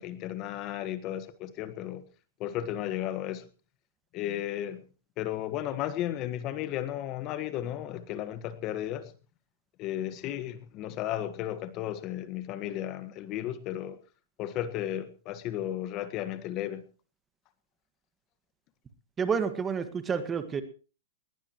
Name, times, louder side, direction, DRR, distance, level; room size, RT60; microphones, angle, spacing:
voice 1, 0.0-2.0 2.4-3.5 4.1-4.8 5.2-9.1 9.8-14.0 14.4-16.8, left 12 dB, 40° left, 1.5 m, -34 dB
voice 2, 19.2-20.6, right 6 dB, 20° right, 1.8 m, -29 dB
20.0 x 18.0 x 3.1 m
hypercardioid pair, 125°, 0 cm